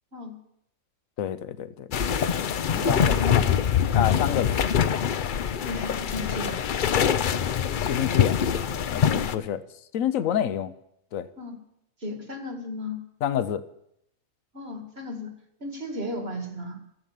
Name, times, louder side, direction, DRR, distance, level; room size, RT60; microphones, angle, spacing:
voice 1, 1.2-1.9 2.2-3.3 3.9-4.6 7.8-8.4 8.9-9.6 9.9-10.7 11.1-11.3 13.2-13.6, left 10 dB, 80° left, 13 dB, 1.2 m, -28 dB
sound 1, 1.9-9.3, left 8 dB, 55° left, 0.6 m, -24 dB
voice 2, 2.8-3.5 5.7-6.6 9.2-9.5 11.4-11.6 12.0-13.0 14.5-15.3 15.6-16.8, left 2 dB, 50° right, 3 dB, 2.5 m, -34 dB
13.5 x 8.1 x 8.7 m, 0.77 s
omnidirectional pair, 1.4 m